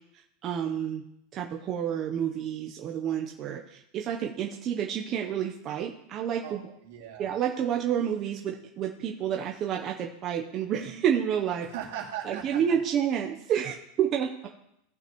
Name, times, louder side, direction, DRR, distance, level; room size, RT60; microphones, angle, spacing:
voice 1, 0.4-1.0 1.3-6.6 7.2-11.7 12.2-14.5, right 9 dB, 30° right, 1 dB, 0.6 m, -29 dB
voice 2, 6.4-7.3 11.6-12.6, right 10 dB, 70° right, -1 dB, 2.3 m, -39 dB
16.5 x 5.8 x 3.0 m, 0.78 s
supercardioid pair, 165°, 0 cm